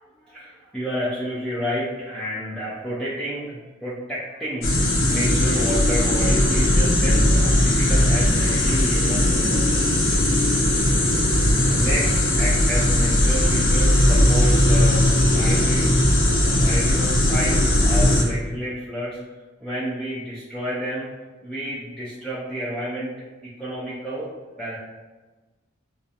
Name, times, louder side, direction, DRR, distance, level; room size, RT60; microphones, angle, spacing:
voice 1, 0.2-10.0 10.3-10.4 11.6-15.1 15.3-16.1 16.4-19.2 19.6-21.1 21.4-23.1 23.4-24.3 24.6-24.8, equal, 5° left, -9 dB, 0.3 m, -30 dB
sound 1, 4.6-18.2, left 1 dB, 70° left, 0.5 m, -18 dB
2.3 x 2.2 x 2.7 m, 1.2 s
head